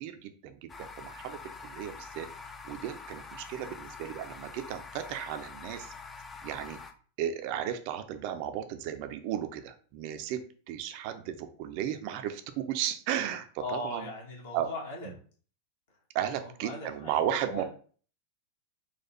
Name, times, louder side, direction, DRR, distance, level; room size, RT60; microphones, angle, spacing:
voice 1, 0.0-2.3 2.6-5.9 6.4-6.8 7.2-14.1 14.5-14.7 16.1-17.6, right 10 dB, 45° right, 8 dB, 0.4 m, -34 dB
sound 1, 0.7-6.9, left 4 dB, 15° left, 0.5 m, -45 dB
voice 2, 13.6-15.1 16.2-17.6, left 2 dB, 55° left, -2 dB, 1.6 m, -39 dB
4.1 x 2.4 x 4.2 m, 0.43 s
figure-of-eight pair, 90°, 0 cm